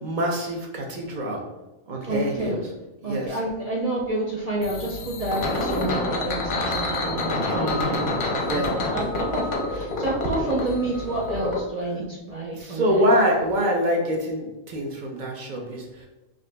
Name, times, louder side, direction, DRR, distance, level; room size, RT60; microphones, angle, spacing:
voice 1, 0.0-1.4 1.9-2.6 3.0-3.4 7.6-8.7 12.6-16.1, equal, 45° right, 0 dB, 0.7 m, -25 dB
voice 2, 2.0-2.6 3.0-8.2 8.5-13.0, right 2 dB, 70° right, -4 dB, 0.3 m, -29 dB
sound 1, 4.6-11.6, left 2 dB, 50° left, 0.6 m, -27 dB
5.0 x 2.8 x 2.2 m, 1.1 s
omnidirectional pair, 1.4 m